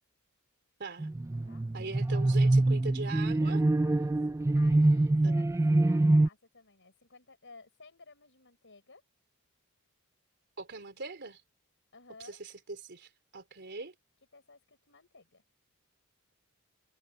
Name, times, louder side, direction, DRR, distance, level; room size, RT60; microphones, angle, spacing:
sound 1, 1.0-6.3, right 2 dB, 15° right, 0.3 m, -25 dB
voice 1, 1.7-3.6 5.2-5.4 10.6-11.4 12.2-12.5 12.8-13.9, right 3 dB, 55° right, 3.5 m, -41 dB
voice 2, 3.9-9.0 11.9-12.4 14.3-15.4, left 3 dB, 60° left, 6.8 m, -56 dB
head